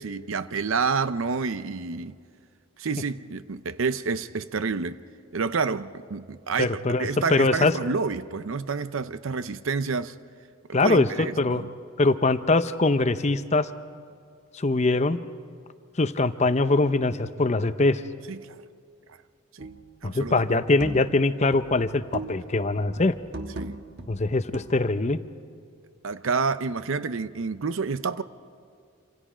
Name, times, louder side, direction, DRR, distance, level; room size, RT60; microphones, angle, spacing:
voice 1, 0.0-2.1 2.8-5.0 5.3-10.1 10.7-11.7 18.3-18.4 19.6-19.7 20.0-20.5 23.6-23.8 26.0-28.2, right 5 dB, 70° right, 0.6 m, -29 dB
voice 2, 6.6-7.7 10.7-11.6 12.0-13.7 14.5-15.2 16.0-18.0 20.0-23.2 24.1-25.2, left 2 dB, 30° left, 0.6 m, -22 dB
sound 1, 19.6-19.9 20.3-21.2 21.5-22.5 22.8-25.0, right 2 dB, 50° right, 1.4 m, -39 dB
27.0 x 26.5 x 5.0 m
head